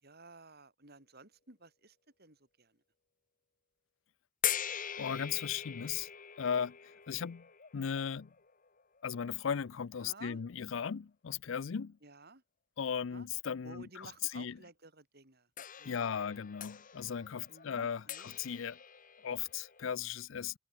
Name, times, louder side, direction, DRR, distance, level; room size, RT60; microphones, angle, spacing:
voice 1, 0.0-2.8 10.0-10.4 12.0-12.4 13.1-13.3 13.6-15.5 15.8-16.2 17.5-18.3, right 3 dB, 50° right, 5.9 m, -55 dB
sound 1, 4.4-9.5 10.3-10.4 15.6-19.9, left 10 dB, 40° left, 1.5 m, -42 dB
voice 2, 5.0-6.1 6.4-7.5 7.7-8.3 9.0-12.0 12.8-14.6 15.8-18.8 19.2-20.6, left 7 dB, 65° left, 0.5 m, -37 dB
head